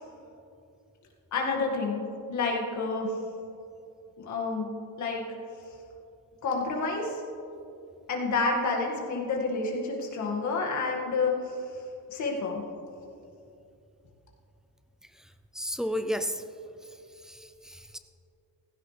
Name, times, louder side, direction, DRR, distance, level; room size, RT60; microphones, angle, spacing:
voice 1, 1.3-3.1 4.2-5.2 6.4-7.2 8.1-11.6 12.1-12.6, left 3 dB, 50° left, -1 dB, 2.0 m, -29 dB
voice 2, 15.1-16.4 16.8-17.0 17.2-18.0, equal, ahead, 8 dB, 0.3 m, -34 dB
16.5 x 15.5 x 3.3 m, 2.7 s
cardioid pair, 170°, 36 cm